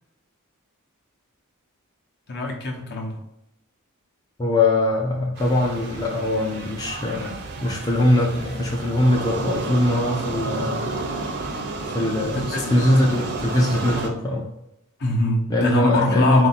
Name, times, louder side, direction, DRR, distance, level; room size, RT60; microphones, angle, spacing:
voice 1, 2.3-3.2 12.5-13.1 15.0-16.5, left 2 dB, 50° left, 1 dB, 0.8 m, -23 dB
voice 2, 4.4-10.9 11.9-14.5 15.5-16.5, left 1 dB, 15° left, -2 dB, 0.5 m, -22 dB
sound 1, 5.3-14.1, right 3 dB, 50° right, 0.6 m, -31 dB
3.7 x 2.6 x 4.1 m, 0.85 s
head